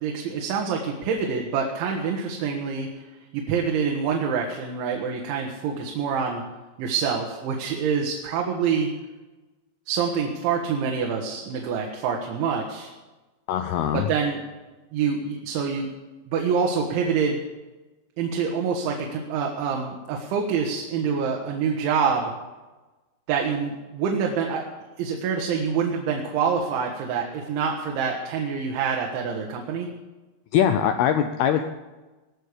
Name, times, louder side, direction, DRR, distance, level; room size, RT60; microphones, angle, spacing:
voice 1, 0.0-3.0 3.3-6.4 6.8-8.9 9.9-12.9 13.9-14.4 14.9-15.9 16.3-17.4 18.2-22.3 23.3-24.7 25.0-29.9, right 6 dB, 85° right, 1 dB, 3.7 m, -26 dB
voice 2, 13.5-14.1 30.5-31.6, left 9 dB, 85° left, 7 dB, 2.2 m, -22 dB
19.5 x 6.6 x 8.3 m, 1.2 s
omnidirectional pair, 5.3 m